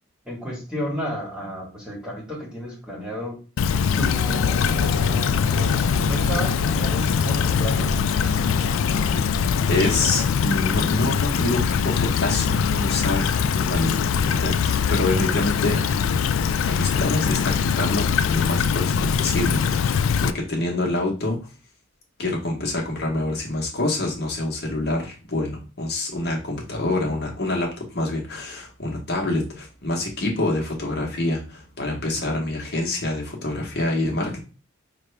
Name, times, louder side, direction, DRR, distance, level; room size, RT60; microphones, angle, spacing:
voice 1, 0.2-3.4 4.0-7.9, equal, 5° right, -3 dB, 1.3 m, -32 dB
Stream / Trickle dribble, 3.6-20.3, left 6 dB, 70° left, 0.3 m, -22 dB
sound 1, 4.2-10.2, left 2 dB, 85° left, 0.8 m, -33 dB
voice 2, 9.7-16.0 16.6-19.9 20.2-21.4 22.2-34.4, left 2 dB, 50° left, -1 dB, 1.0 m, -26 dB
5.0 x 2.3 x 3.2 m, 0.35 s
head